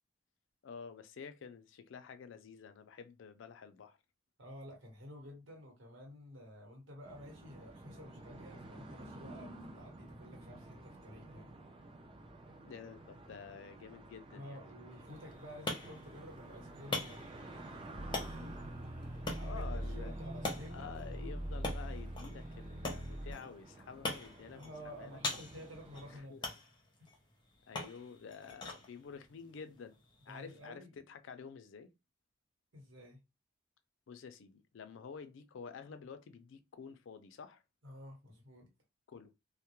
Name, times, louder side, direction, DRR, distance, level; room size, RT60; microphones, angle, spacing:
voice 1, 0.6-4.0 12.6-14.6 18.1-18.5 19.4-20.2 20.7-25.2 26.1-26.4 27.7-30.0 30.3-31.9 34.1-37.6 39.1-39.3, left 6 dB, 75° left, 0.4 m, -50 dB
voice 2, 4.4-11.5 14.3-17.4 19.3-20.9 24.5-26.5 30.3-30.9 32.7-33.2 37.8-38.7, equal, 80° right, 1.2 m, -51 dB
sound 1, 7.0-26.2, right 2 dB, 25° right, 0.4 m, -52 dB
sound 2, 15.1-30.7, left 2 dB, 25° left, 0.5 m, -45 dB
sound 3, 17.9-23.3, right 1 dB, 45° right, 0.9 m, -42 dB
2.2 x 2.1 x 2.9 m
head